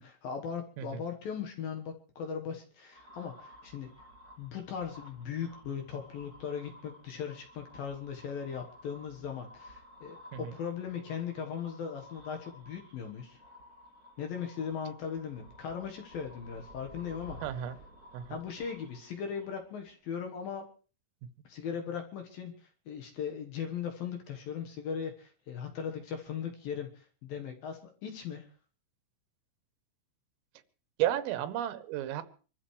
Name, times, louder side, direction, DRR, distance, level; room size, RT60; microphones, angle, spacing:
voice 1, 0.0-3.9 4.4-13.4 14.2-17.4 18.3-20.6 21.4-28.5, left 7 dB, 65° left, 4 dB, 2.3 m, -38 dB
sound 1, 2.9-20.0, equal, 25° right, 3.0 m, -54 dB
voice 2, 17.4-17.8 18.1-18.4 31.0-32.2, right 12 dB, 80° right, 11 dB, 3.6 m, -33 dB
26.5 x 13.5 x 3.2 m, 0.38 s
omnidirectional pair, 5.9 m